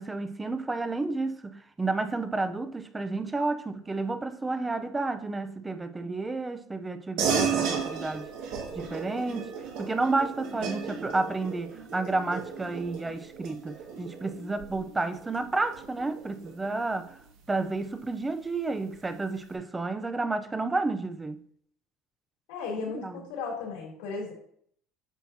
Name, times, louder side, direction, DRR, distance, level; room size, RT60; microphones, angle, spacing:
voice 1, 0.0-8.3 8.7-9.5 9.8-17.1 17.5-21.4 22.9-23.2, right 3 dB, 10° right, 0.5 m, -31 dB
sound 1, 7.2-17.0, right 6 dB, 70° right, 1.8 m, -34 dB
voice 2, 22.5-24.3, left 4 dB, 85° left, 3.0 m, -35 dB
9.0 x 6.4 x 2.7 m
cardioid pair, 155°, 0 cm